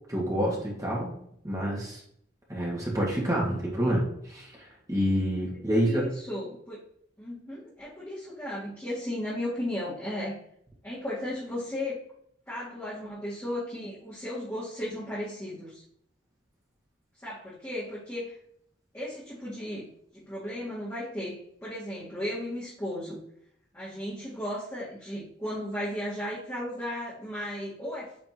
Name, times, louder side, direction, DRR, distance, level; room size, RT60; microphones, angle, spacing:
voice 1, 0.1-1.1 1.4-2.0 2.5-6.1, equal, 15° right, -4 dB, 1.8 m, -28 dB
voice 2, 5.7-6.8 7.2-10.4 10.8-12.0 12.5-15.8 17.2-18.3 18.9-19.9 20.1-23.2 23.7-28.1, left 1 dB, 10° left, -10 dB, 2.1 m, -35 dB
8.9 x 4.2 x 2.9 m, 0.68 s
head